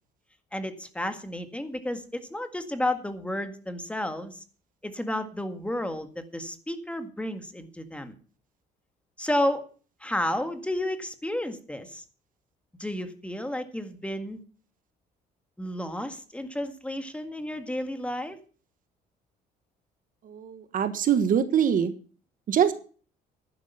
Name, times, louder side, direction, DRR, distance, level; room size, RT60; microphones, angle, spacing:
voice 1, 0.5-4.4 4.8-8.2 9.2-9.6 10.0-12.0 12.8-14.4 15.6-18.4, left 1 dB, 5° left, 8 dB, 1.8 m, -32 dB
voice 2, 20.3-21.9 22.5-22.7, right 8 dB, 55° right, 11 dB, 1.4 m, -23 dB
11.0 x 11.0 x 5.7 m, 0.40 s
cardioid pair, 110°, 17 cm